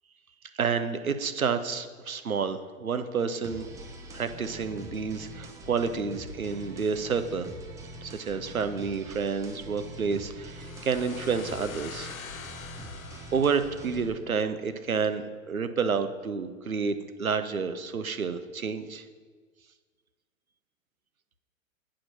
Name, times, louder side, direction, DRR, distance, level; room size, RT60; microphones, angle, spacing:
voice 1, 0.5-3.7 4.1-7.5 8.0-12.1 13.3-19.0, right 5 dB, 90° right, 10 dB, 0.7 m, -29 dB
sound 1, 3.4-14.1, right 1 dB, 10° right, 0.4 m, -44 dB
sound 2, 10.6-14.3, left 7 dB, 80° left, 0.7 m, -45 dB
8.7 x 5.0 x 5.9 m, 1.5 s
figure-of-eight pair, 105°, 41 cm